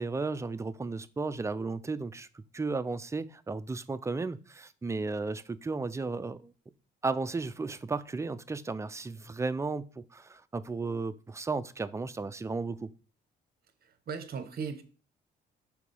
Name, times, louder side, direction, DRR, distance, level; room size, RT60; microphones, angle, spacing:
voice 1, 0.0-6.5 7.0-12.9, right 3 dB, 15° right, 0.4 m, -34 dB
voice 2, 13.8-14.8, right 6 dB, 50° right, 1.0 m, -37 dB
4.8 x 3.8 x 5.4 m
cardioid pair, 90°, 20 cm